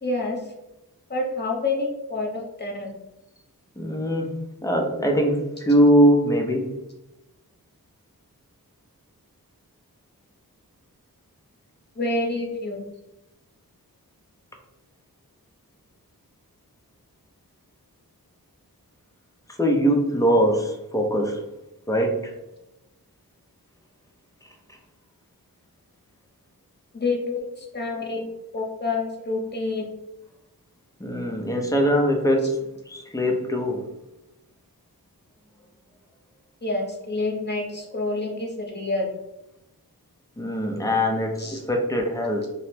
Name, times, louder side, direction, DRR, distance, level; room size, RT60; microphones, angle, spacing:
voice 1, 0.0-0.5 1.1-2.9 12.0-12.8 26.9-28.3 28.5-29.9 36.6-39.1 41.4-41.6, left 2 dB, 25° left, -2 dB, 0.8 m, -28 dB
voice 2, 3.8-4.3 4.6-6.7 19.6-21.4 21.9-22.3 27.3-27.4 31.0-33.8 40.4-42.5, equal, 10° left, 2 dB, 0.5 m, -22 dB
2.9 x 2.0 x 3.1 m, 0.93 s
wide cardioid pair, 70°, 38 cm